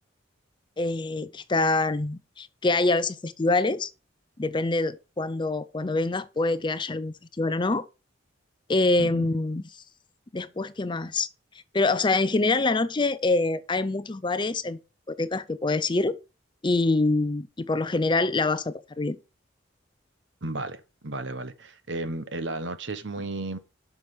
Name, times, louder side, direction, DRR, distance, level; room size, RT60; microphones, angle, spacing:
voice 1, 0.8-3.9 4.4-7.8 8.7-9.6 10.3-11.3 11.7-14.8 15.1-16.2 16.6-19.2, left 2 dB, 25° left, 0.5 m, -25 dB
voice 2, 9.0-9.3 20.4-23.6, right 2 dB, 65° right, 1.1 m, -34 dB
7.7 x 6.2 x 7.1 m
head